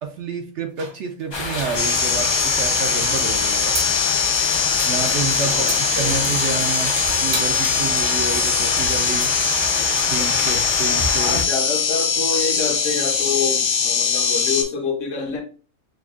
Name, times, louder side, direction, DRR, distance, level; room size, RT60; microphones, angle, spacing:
voice 1, 0.0-3.7 4.8-6.9 7.2-9.3 10.1-11.4, right 5 dB, 65° right, 0.8 m, -29 dB
sound 1, 0.7-2.2 3.7-3.9 5.6-5.8 6.7-6.9 7.3-7.6, right 4 dB, 85° right, 1.3 m, -32 dB
sound 2, 1.3-11.4, left 2 dB, 35° left, 0.4 m, -27 dB
sound 3, 1.8-14.6, left 6 dB, 85° left, 1.2 m, -21 dB
voice 2, 5.5-6.3 11.2-15.4, left 4 dB, 65° left, 1.1 m, -27 dB
6.0 x 2.3 x 2.3 m
omnidirectional pair, 1.5 m